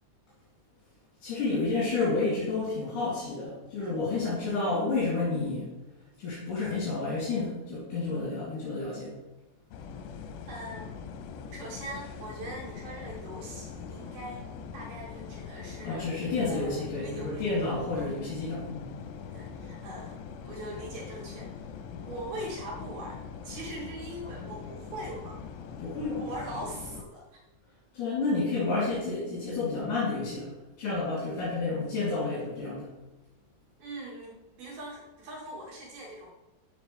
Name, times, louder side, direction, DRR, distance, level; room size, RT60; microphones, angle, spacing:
voice 1, 1.2-5.7 6.2-9.1 15.8-18.9 25.8-26.3 27.9-30.5 30.8-32.9, left 3 dB, 50° left, -9 dB, 4.3 m, -30 dB
sound 1, 9.7-27.0, left 6 dB, 80° left, 2.9 m, -42 dB
voice 2, 10.5-11.0 11.5-14.4 14.7-16.1 16.5-17.5 18.0-18.1 19.3-21.5 22.0-23.2 23.4-25.4 26.2-27.4 33.8-36.3, right 1 dB, 65° right, -2 dB, 3.0 m, -41 dB
12.5 x 6.4 x 3.3 m, 1.0 s
omnidirectional pair, 5.0 m